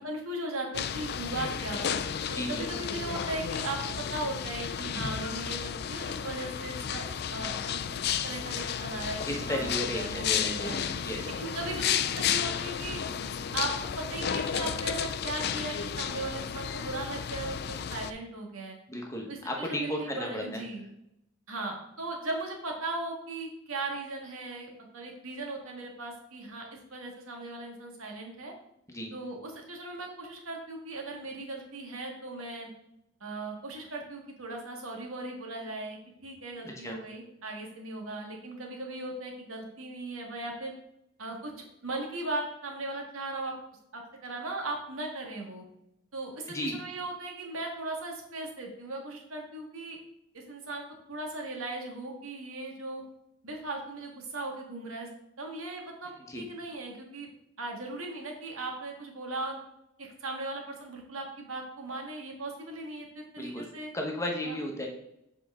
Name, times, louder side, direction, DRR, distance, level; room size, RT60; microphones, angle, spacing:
voice 1, 0.0-1.9 2.3-7.0 7.3-7.8 8.2-9.7 9.9-10.8 11.4-13.0 13.5-18.8 19.3-20.8 21.5-28.5 29.1-32.7 33.2-40.7 41.2-41.5 41.8-43.5 43.9-45.6 46.1-50.0 50.3-50.8 51.1-53.0 53.4-55.1 55.4-57.3 57.6-59.6 60.0-63.9 64.4-64.6, right 2 dB, 85° right, 1 dB, 1.7 m, -38 dB
sound 1, 0.7-18.1, left 8 dB, 50° left, 0.4 m, -33 dB
voice 2, 2.3-2.8 9.2-10.7 11.0-11.3 18.9-20.6 28.9-29.1 36.6-37.0 46.5-46.8 56.3-56.4 63.4-63.7 63.9-64.9, left 1 dB, 15° left, 1 dB, 1.1 m, -34 dB
7.7 x 5.0 x 3.6 m, 0.81 s
head